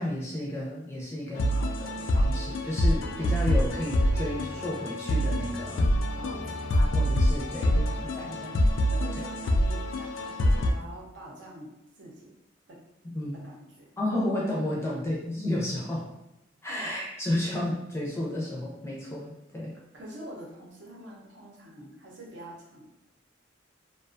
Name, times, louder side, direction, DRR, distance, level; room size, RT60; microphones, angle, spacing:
voice 1, 0.0-5.9 6.2-6.5 6.8-8.7 13.0-13.4 14.0-16.1 16.6-19.7, left 1 dB, 15° left, -5 dB, 0.5 m, -32 dB
sound 1, 1.4-10.7, equal, 75° left, 0.3 m, -26 dB
voice 2, 6.2-6.7 8.9-11.7 11.9-12.3 12.7-12.8 13.3-13.9 14.9-15.1 16.7-16.9 19.9-22.9, right 1 dB, 65° right, -3 dB, 0.7 m, -45 dB
2.4 x 2.3 x 2.5 m, 0.89 s
head